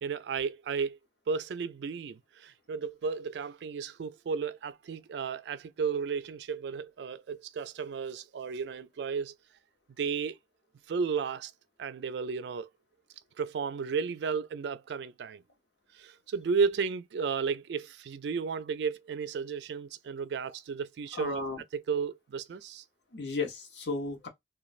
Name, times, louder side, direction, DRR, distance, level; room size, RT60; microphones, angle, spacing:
voice 1, 0.0-1.0 1.3-9.3 10.0-10.4 10.9-11.5 11.8-12.7 13.4-15.4 15.9-21.4 21.7-22.8, right 5 dB, 65° right, 0.3 m, -33 dB
voice 2, 21.1-21.6 23.1-24.3, left 3 dB, 70° left, 0.9 m, -34 dB
3.1 x 2.2 x 2.4 m
head